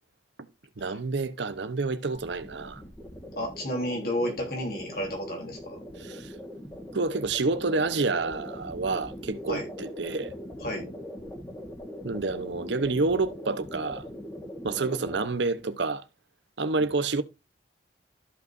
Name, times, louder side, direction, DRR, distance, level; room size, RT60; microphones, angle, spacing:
voice 1, 0.8-2.8 6.0-6.3 6.9-10.3 12.0-14.1 14.6-16.0 16.6-17.2, right 3 dB, 75° right, 0.8 m, -28 dB
sound 1, 2.1-15.3, equal, 15° left, 2.1 m, -41 dB
voice 2, 3.4-5.8 9.5-9.7 10.6-10.9, equal, 55° left, 3.0 m, -31 dB
14.0 x 5.6 x 2.5 m
head